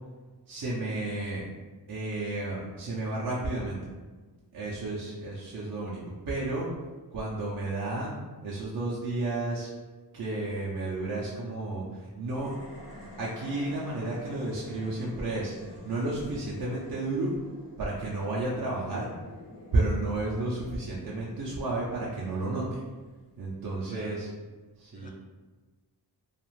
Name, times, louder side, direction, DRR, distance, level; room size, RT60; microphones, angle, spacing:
voice 1, 0.5-1.4 1.9-3.8 4.5-6.0 6.3-6.7 7.1-8.2 8.4-9.7 10.1-12.6 13.2-17.3 17.8-19.1 19.7-22.8 23.4-24.3 24.8-25.1, right 2 dB, 55° right, -6 dB, 0.6 m, -32 dB
sound 1, 12.3-23.7, left 1 dB, 85° left, 1.0 m, -49 dB
voice 2, 23.9-24.3 24.9-25.1, left 2 dB, 20° left, 3 dB, 0.4 m, -48 dB
2.4 x 2.4 x 3.1 m, 1.3 s
cardioid pair, 55°, 41 cm